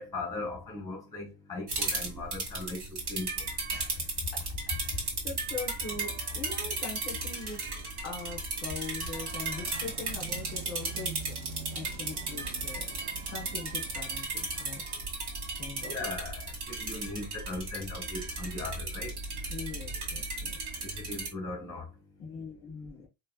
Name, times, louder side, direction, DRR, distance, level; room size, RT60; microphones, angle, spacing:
voice 1, 0.0-3.5 15.8-19.1 20.8-21.9, left 2 dB, 5° left, 1.6 m, -38 dB
sound 1, 1.7-21.3, right 3 dB, 75° right, 2.2 m, -35 dB
voice 2, 3.7-7.6 8.0-11.2 11.7-13.0 13.3-14.8 15.6-16.0 19.5-20.6 22.2-23.1, left 4 dB, 25° left, 1.2 m, -41 dB
sound 2, 9.6-14.5, right 9 dB, 40° right, 0.5 m, -46 dB
4.5 x 3.2 x 2.3 m
cardioid pair, 160°, 50 cm